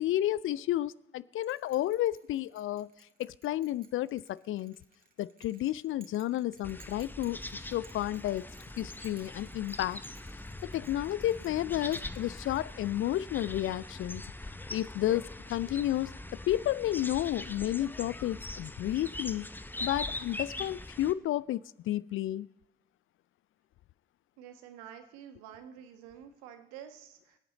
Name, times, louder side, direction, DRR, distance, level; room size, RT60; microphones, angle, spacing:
voice 1, 0.0-2.9 3.2-4.7 5.2-7.4 7.7-8.5 8.8-10.0 10.6-14.2 14.7-19.5 19.8-22.5, left 13 dB, 45° left, 20 dB, 0.4 m, -31 dB
Bell, 1.4-13.1, right 4 dB, 30° right, 2.1 m, -60 dB
sound 1, 6.6-21.1, left 1 dB, 5° left, 0.7 m, -42 dB
voice 2, 24.4-27.4, right 9 dB, 70° right, 7 dB, 1.3 m, -49 dB
23.5 x 8.7 x 4.0 m, 0.93 s
figure-of-eight pair, 45°, 29 cm